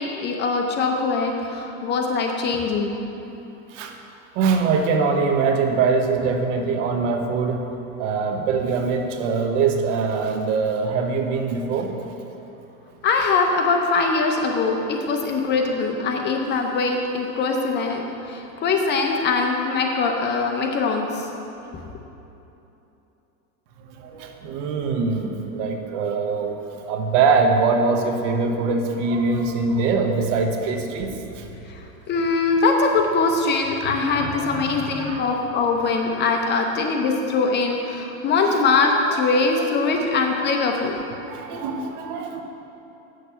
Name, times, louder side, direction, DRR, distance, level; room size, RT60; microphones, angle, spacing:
voice 1, 0.0-3.0 13.0-21.3 32.1-41.0, left 4 dB, 25° left, 2 dB, 0.6 m, -22 dB
voice 2, 4.3-7.6 8.0-11.9 24.0-26.6 26.9-31.5 34.2-35.3 39.1-39.2 39.6-39.7 40.0-40.1 41.2-42.4, right 4 dB, 60° right, 4 dB, 1.1 m, -23 dB
8.3 x 6.6 x 5.6 m, 2.9 s
supercardioid pair, 140°, 41 cm